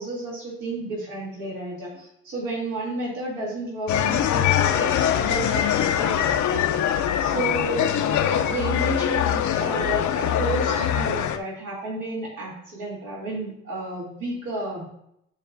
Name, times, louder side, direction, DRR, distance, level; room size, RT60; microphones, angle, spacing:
voice 1, 0.0-6.8 7.2-7.8 8.2-14.9, right 2 dB, 80° right, -5 dB, 3.0 m, -31 dB
sound 1, 3.9-11.4, left 10 dB, 70° left, 0.7 m, -23 dB
11.5 x 4.7 x 2.7 m, 0.74 s
cardioid pair, 90°, 30 cm